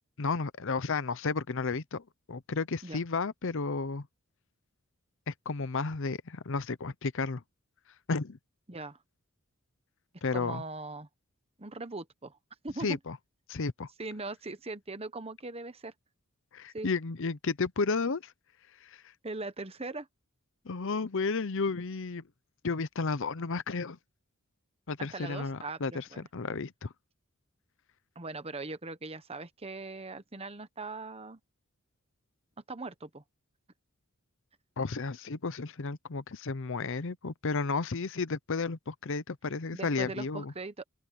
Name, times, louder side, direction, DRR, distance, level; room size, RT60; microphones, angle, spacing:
voice 1, 0.2-4.1 5.3-7.4 8.1-8.4 10.2-10.6 12.8-13.2 13.5-13.9 16.5-18.3 18.8-19.0 20.6-22.2 22.6-24.0 24.9-26.9 34.8-40.5, left 4 dB, 60° left, 0.7 m, -32 dB
voice 2, 10.3-11.1 11.6-12.4 12.6-13.0 14.0-15.9 16.7-16.9 19.2-20.1 25.1-26.2 28.1-31.4 32.7-33.2 39.7-40.8, right 3 dB, 25° right, 1.1 m, -40 dB
open air
head